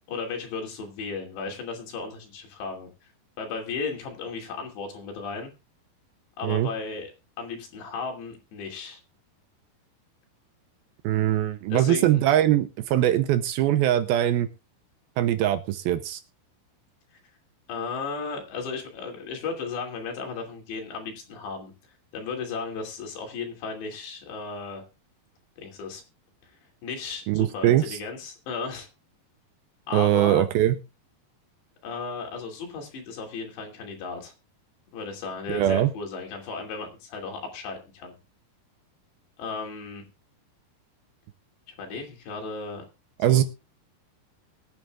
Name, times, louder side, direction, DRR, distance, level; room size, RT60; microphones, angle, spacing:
voice 1, 0.1-3.1 3.4-5.5 6.4-7.1 7.4-9.0 11.7-12.2 17.7-21.7 22.1-24.8 25.6-26.0 26.4-26.5 26.8-28.9 29.9-30.5 31.8-34.3 34.9-38.1 39.4-40.0 41.7-42.8 43.3-43.4, left 4 dB, 85° left, 2 dB, 5.0 m, -35 dB
voice 2, 11.0-14.5 15.2-16.2 27.3-28.0 29.9-30.8 35.5-35.9 43.2-43.4, right 12 dB, 80° right, 10 dB, 2.4 m, -22 dB
23.0 x 9.0 x 2.5 m, 0.27 s
omnidirectional pair, 4.8 m